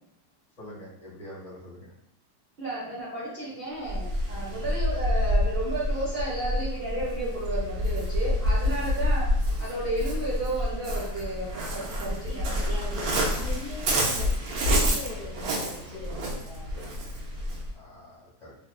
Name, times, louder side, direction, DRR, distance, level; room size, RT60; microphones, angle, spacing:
voice 1, 0.6-1.9 4.5-4.7 8.7-8.9 17.7-18.5, left 1 dB, 30° left, -8 dB, 1.0 m, -45 dB
voice 2, 2.6-9.3 9.6-13.0, right 1 dB, 50° right, -9 dB, 0.7 m, -33 dB
Waves surf, 3.8-17.7, equal, 70° right, 1.0 m, -28 dB
voice 3, 12.2-17.4, left 3 dB, 60° left, -7 dB, 0.9 m, -42 dB
2.9 x 2.1 x 2.3 m, 0.75 s
omnidirectional pair, 1.7 m